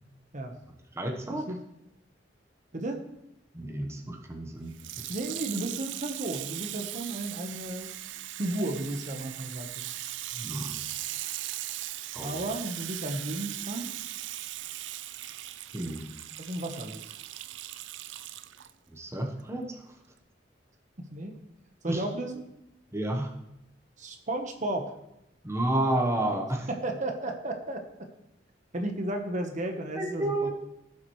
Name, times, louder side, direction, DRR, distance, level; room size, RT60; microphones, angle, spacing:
voice 1, 0.9-1.5 3.5-5.1 10.3-10.8 12.1-12.3 15.7-16.0 18.9-19.9 21.9-22.0 22.9-23.3 25.4-26.7 30.0-30.5, right 1 dB, 15° right, 1 dB, 1.1 m, -31 dB
voice 2, 2.7-3.0 5.1-7.9 8.4-9.9 12.2-14.0 16.4-17.0 21.1-21.3 21.8-22.4 24.0-24.9 26.8-27.8 28.7-30.5, right 1 dB, 40° right, 4 dB, 1.1 m, -33 dB
Water tap faucet / Sink (filling or washing), 4.7-18.7 19.4-19.5, right 14 dB, 70° right, 0.4 m, -39 dB
17.0 x 7.2 x 3.2 m, 0.87 s
head